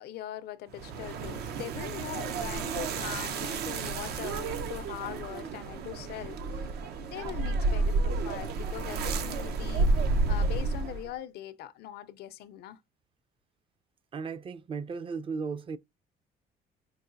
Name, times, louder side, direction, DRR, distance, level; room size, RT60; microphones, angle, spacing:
voice 1, 0.0-6.7 7.0-12.8, left 12 dB, 70° left, 0.5 m, -41 dB
sound 1, 0.7-11.1, right 3 dB, 70° right, 0.6 m, -31 dB
sound 2, 0.8-6.9, right 4 dB, 90° right, 2.6 m, -54 dB
voice 2, 14.1-15.8, right 5 dB, 30° right, 0.4 m, -35 dB
4.7 x 2.5 x 2.5 m
cardioid pair, 110°, 17 cm